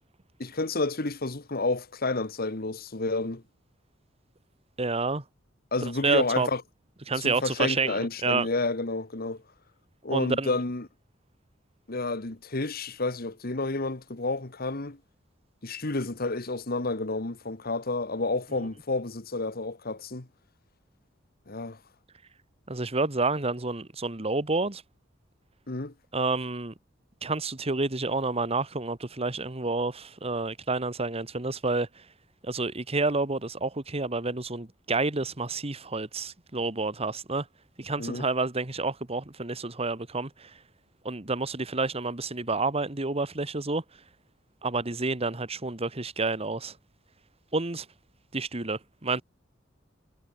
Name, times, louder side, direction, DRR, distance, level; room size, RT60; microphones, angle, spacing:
voice 1, 0.4-3.4 5.7-6.6 7.2-9.4 10.0-10.9 11.9-15.0 15.6-20.3 21.5-21.8 25.7-25.9 38.0-38.3, left 3 dB, 50° left, 1.6 m, -30 dB
voice 2, 4.8-5.2 5.8-6.5 7.1-8.5 10.1-10.5 22.7-24.8 26.1-26.7 27.2-31.9 32.4-37.4 37.8-40.5 41.0-43.8 44.6-46.7 47.5-47.8 48.3-49.2, right 3 dB, 30° right, 1.6 m, -29 dB
head